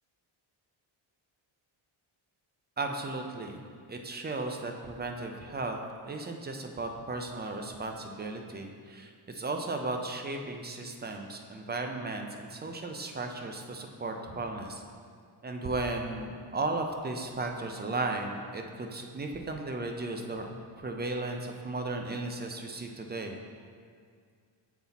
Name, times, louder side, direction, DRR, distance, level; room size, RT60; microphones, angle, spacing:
voice 1, 2.8-3.6 3.9-5.8 6.0-14.8 15.4-23.4, right 2 dB, 25° right, 3 dB, 0.4 m, -35 dB
7.1 x 4.1 x 4.0 m, 2.1 s
cardioid pair, 130°, 47 cm